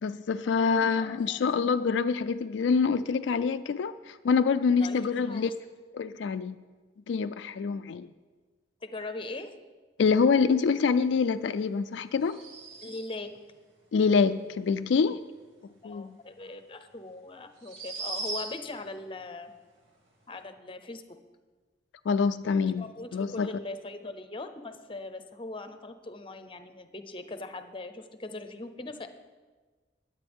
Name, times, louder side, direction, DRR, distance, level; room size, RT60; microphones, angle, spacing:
voice 1, 0.0-5.5 5.9-6.6 7.1-8.1 10.0-12.4 13.9-15.2 15.8-16.1 22.1-22.8 23.1-23.5, left 5 dB, 75° left, 10 dB, 0.4 m, -26 dB
voice 2, 1.0-1.5 4.8-5.5 8.8-9.5 12.8-13.3 15.6-19.5 20.3-21.2 22.5-29.1, left 2 dB, 30° left, 9 dB, 0.7 m, -41 dB
sound 1, 12.2-13.3 16.4-16.5 17.6-18.8, right 2 dB, 90° right, 2.2 m, -38 dB
20.5 x 8.5 x 3.6 m, 1.4 s
head